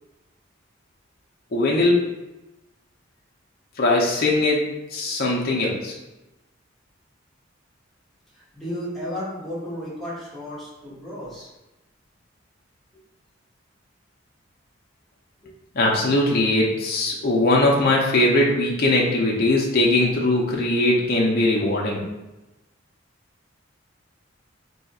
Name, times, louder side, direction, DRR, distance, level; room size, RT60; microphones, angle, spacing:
voice 1, 1.5-2.0 3.8-6.0 15.7-22.0, left 2 dB, 50° left, -3 dB, 0.6 m, -20 dB
voice 2, 8.3-11.5 15.4-15.5, equal, ahead, -9 dB, 1.1 m, -33 dB
2.7 x 2.4 x 4.1 m, 1.0 s
head